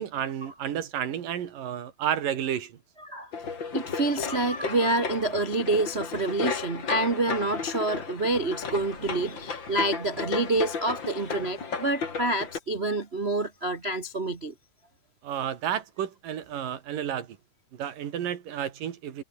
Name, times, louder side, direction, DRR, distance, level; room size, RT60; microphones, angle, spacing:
voice 1, 0.0-2.8 15.2-17.4 17.7-19.2, right 9 dB, 85° right, 3.8 m, -31 dB
sound 1, 3.3-12.6, left 5 dB, 35° left, 3.4 m, -34 dB
voice 2, 3.7-14.5, right 2 dB, 55° right, 0.6 m, -27 dB
omnidirectional pair, 3.8 m